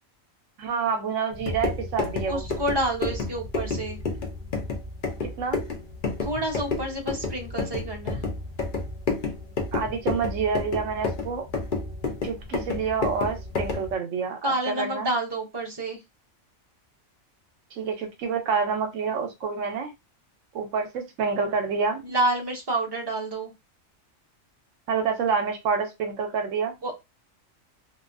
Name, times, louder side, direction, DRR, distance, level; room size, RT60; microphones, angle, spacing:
voice 1, 0.6-2.5 5.2-5.6 9.7-11.5 12.2-15.1 17.7-19.9 20.5-22.0 24.9-26.7, right 5 dB, 75° right, 5 dB, 0.9 m, -28 dB
sound 1, 1.3-13.9, left 3 dB, 50° left, 0.6 m, -30 dB
voice 2, 2.3-4.0 6.2-8.2 14.4-16.0 22.0-23.5 26.8-26.9, right 1 dB, 30° right, 0 dB, 0.5 m, -28 dB
2.5 x 2.3 x 2.4 m, 0.23 s
omnidirectional pair, 1.4 m